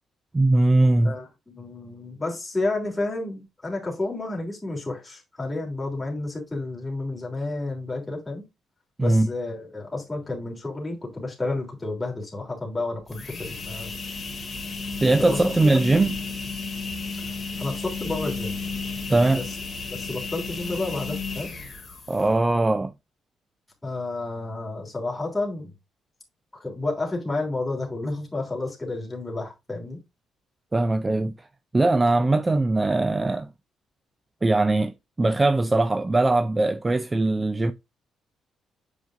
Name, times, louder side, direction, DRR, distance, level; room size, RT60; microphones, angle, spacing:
voice 1, 0.3-1.2 9.0-9.3 15.0-16.1 19.1-19.4 22.1-22.9 30.7-31.3 31.7-33.5 34.4-37.7, right 2 dB, 15° right, 0.4 m, -21 dB
voice 2, 1.0-8.4 9.0-13.9 15.1-15.8 17.3-18.6 19.3-19.6 19.9-21.5 23.8-25.7 26.6-30.0, left 2 dB, 10° left, 3.1 m, -31 dB
sound 1, 13.0-22.4, left 4 dB, 30° left, 2.2 m, -33 dB
7.9 x 5.2 x 2.5 m
cardioid pair, 130°, 0 cm